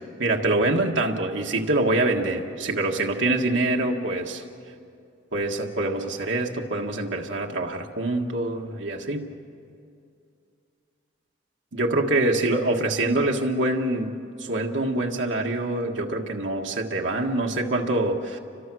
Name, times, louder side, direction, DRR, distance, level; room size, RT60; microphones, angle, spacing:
voice 1, 0.2-4.4 5.3-9.2 11.7-14.1 14.4-18.4, right 2 dB, 75° right, 1 dB, 1.7 m, -25 dB
29.5 x 24.5 x 6.3 m, 2.4 s
head